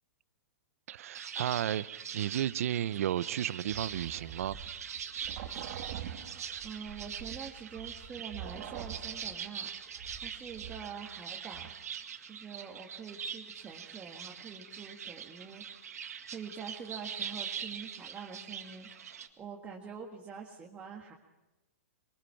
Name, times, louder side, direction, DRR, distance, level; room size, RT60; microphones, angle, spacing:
voice 1, 0.9-4.6, right 11 dB, 70° right, 19 dB, 0.7 m, -33 dB
sound 1, 1.1-19.3, right 8 dB, 85° right, 1.9 m, -43 dB
sound 2, 3.7-11.2 11.5-11.7, right 9 dB, 50° right, 1.9 m, -45 dB
voice 2, 6.6-9.7 10.2-11.7 12.3-15.8 16.3-18.9 19.4-21.1, right 6 dB, 15° right, 0 dB, 1.7 m, -45 dB
22.5 x 20.0 x 5.8 m, 1.1 s
hypercardioid pair, 140°, 8 cm